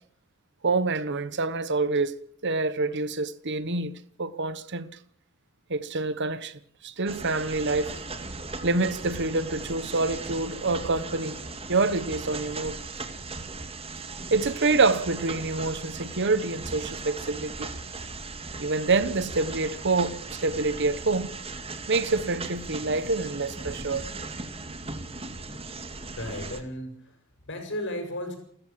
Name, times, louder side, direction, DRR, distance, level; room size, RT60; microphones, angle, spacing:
voice 1, 0.6-2.1 2.4-4.9 5.7-8.0 8.6-11.3 11.7-12.8 14.3-17.7 18.6-21.3 21.9-24.0, right 3 dB, 55° right, 1.2 m, -26 dB
sound 1, 7.1-26.6, right 3 dB, 30° right, 2.2 m, -38 dB
voice 2, 26.1-28.4, left 1 dB, 60° left, 7.3 m, -35 dB
29.5 x 14.0 x 7.6 m
head